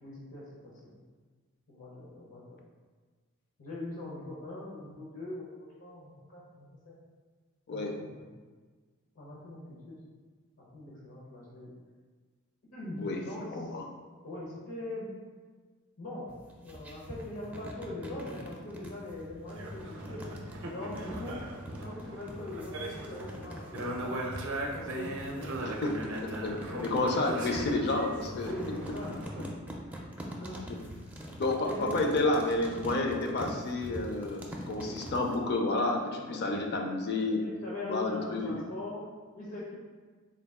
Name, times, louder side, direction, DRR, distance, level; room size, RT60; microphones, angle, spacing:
voice 1, 0.0-1.0 1.7-2.6 3.6-5.5 5.8-7.0 7.7-8.3 9.1-10.0 10.7-11.7 12.7-13.7 14.2-15.1 16.0-16.3 16.6-20.2 20.7-21.4 21.8-24.2 24.7-25.7 26.7-26.9 28.4-29.5 29.8-30.0 30.4-30.6 31.0-31.2 31.6-31.9 33.1-33.2 34.7-35.0 36.3-36.5 37.3-39.0 39.3-39.7, left 1 dB, 75° left, -6 dB, 0.9 m, -42 dB
voice 2, 13.5-13.8 25.6-26.6 26.8-28.5 31.3-37.4 37.9-38.6, left 2 dB, 50° left, 2 dB, 0.5 m, -30 dB
sound 1, 16.3-35.4, equal, 5° right, 0.4 m, -44 dB
sound 2, 19.5-29.5, right 1 dB, 60° right, 0.5 m, -39 dB
3.8 x 2.3 x 3.5 m, 1.5 s
head